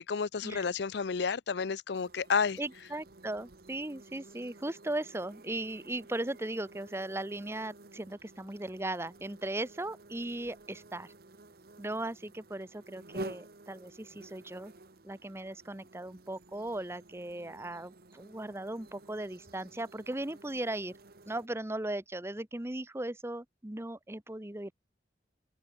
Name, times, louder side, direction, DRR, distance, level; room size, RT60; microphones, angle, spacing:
voice 1, 0.0-2.6, left 5 dB, 60° left, 0.5 m, -31 dB
sound 1, 1.9-21.5, right 2 dB, 55° right, 1.2 m, -52 dB
voice 2, 2.6-11.1 11.8-14.7 15.0-21.0 21.3-24.7, right 1 dB, 15° right, 0.8 m, -37 dB
head